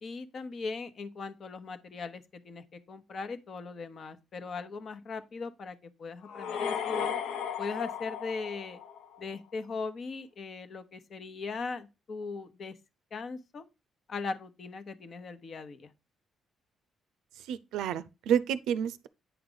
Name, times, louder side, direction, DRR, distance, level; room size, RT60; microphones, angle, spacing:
voice 1, 0.0-7.2 7.6-8.8 9.2-12.8 13.1-13.6 14.1-15.9, left 4 dB, 50° left, 1.0 m, -39 dB
sound 1, 6.2-9.3, left 7 dB, 85° left, 0.8 m, -35 dB
voice 2, 17.5-19.1, right 9 dB, 90° right, 0.5 m, -29 dB
9.3 x 4.7 x 3.9 m
cardioid pair, 90°, 0 cm